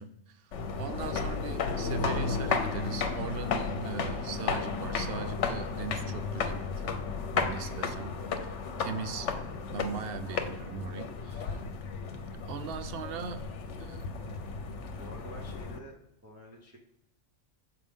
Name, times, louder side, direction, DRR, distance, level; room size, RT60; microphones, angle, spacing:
voice 1, 0.0-6.9 7.3-8.1 8.4-8.5 8.8-9.3 9.7-11.4 12.5-13.4 13.8-14.1, right 6 dB, 60° right, 10 dB, 0.7 m, -40 dB
sound 1, 0.5-15.8, left 4 dB, 70° left, 1.0 m, -33 dB
voice 2, 15.0-16.0 16.2-16.8, right 1 dB, 15° right, -2 dB, 0.7 m, -48 dB
6.5 x 4.6 x 3.6 m, 0.84 s
omnidirectional pair, 1.3 m